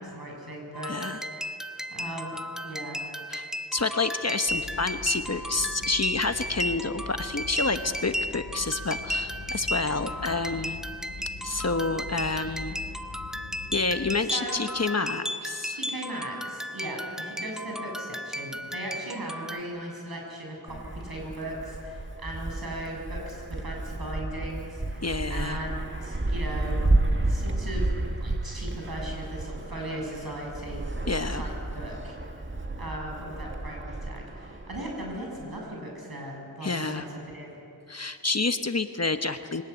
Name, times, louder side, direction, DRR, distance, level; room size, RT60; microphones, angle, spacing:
voice 1, 0.0-1.4 1.9-3.0 14.3-14.6 15.7-25.0 25.3-26.8 27.2-27.9 28.2-30.8 31.3-32.2 32.8-37.6, right 1 dB, 65° right, 0 dB, 7.2 m, -38 dB
sound 1, 0.7-19.6, equal, ahead, 0.9 m, -35 dB
voice 2, 0.9-1.2 3.3-10.8 11.4-12.8 13.7-15.8 25.0-25.6 31.1-31.4 36.6-37.1 37.9-39.6, left 3 dB, 40° left, 8 dB, 1.2 m, -29 dB
sound 2, 4.5-14.2, left 4 dB, 75° left, 1.5 m, -42 dB
Wind, 20.7-35.6, right 2 dB, 30° right, 1.7 m, -31 dB
23.5 x 18.0 x 9.5 m, 2.6 s
wide cardioid pair, 50°, 39 cm